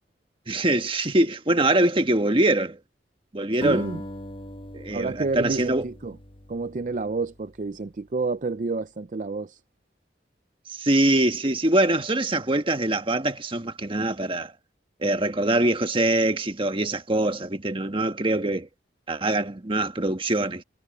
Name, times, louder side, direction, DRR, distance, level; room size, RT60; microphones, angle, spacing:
voice 1, 0.5-2.8 3.3-3.9 4.7-5.8 10.7-14.5 15.0-18.7 19.1-20.6, right 1 dB, 30° right, 1.4 m, -23 dB
Acoustic guitar, 3.6-8.1, left 1 dB, 30° left, 1.2 m, -41 dB
voice 2, 3.6-4.0 4.9-6.2 6.5-9.6, right 3 dB, 45° right, 0.5 m, -29 dB
head